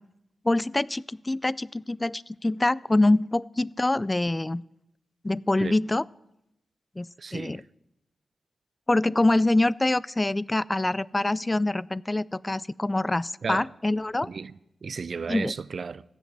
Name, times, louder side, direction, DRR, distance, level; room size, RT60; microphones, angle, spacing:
voice 1, 0.4-4.6 5.2-6.0 7.0-7.6 8.9-14.3 15.3-15.5, left 2 dB, 25° left, 0.4 m, -25 dB
voice 2, 7.2-7.6 13.4-13.7 14.2-16.0, right 5 dB, 65° right, 0.4 m, -34 dB
15.5 x 7.1 x 7.5 m
supercardioid pair, 40°, 0 cm